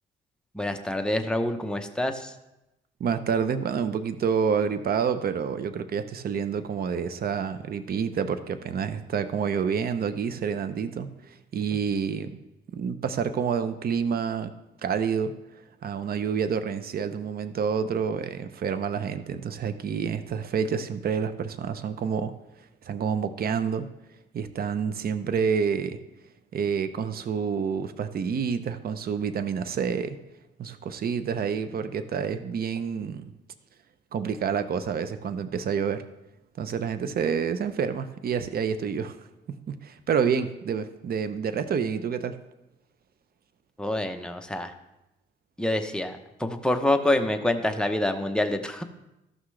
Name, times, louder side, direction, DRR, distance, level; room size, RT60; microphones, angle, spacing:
voice 1, 0.5-2.3 43.8-44.7 45.6-48.8, left 1 dB, 5° left, 5 dB, 0.8 m, -26 dB
voice 2, 3.0-11.1 11.5-12.3 12.7-14.5 14.8-15.3 15.8-22.3 22.8-23.9 24.3-26.0 26.5-30.2 30.6-33.2 34.1-36.0 36.6-39.1 39.5-42.3, right 6 dB, 50° right, 11 dB, 0.7 m, -28 dB
14.0 x 6.0 x 3.3 m, 0.93 s
cardioid pair, 90°, 20 cm